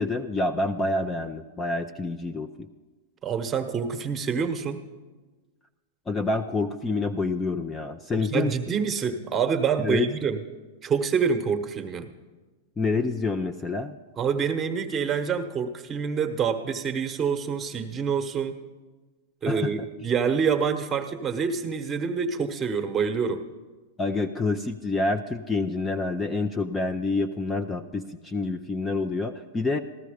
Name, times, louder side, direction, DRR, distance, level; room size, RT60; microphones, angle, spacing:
voice 1, 0.0-2.7 6.1-8.7 9.8-10.1 12.8-13.9 19.5-19.7 24.0-29.8, left 3 dB, 15° left, 7 dB, 0.5 m, -27 dB
voice 2, 3.2-4.8 8.1-10.4 10.8-12.1 14.2-18.5 19.4-23.4, right 6 dB, 20° right, 7 dB, 1.1 m, -26 dB
14.5 x 13.0 x 5.1 m, 1.3 s
hypercardioid pair, 120°, 0 cm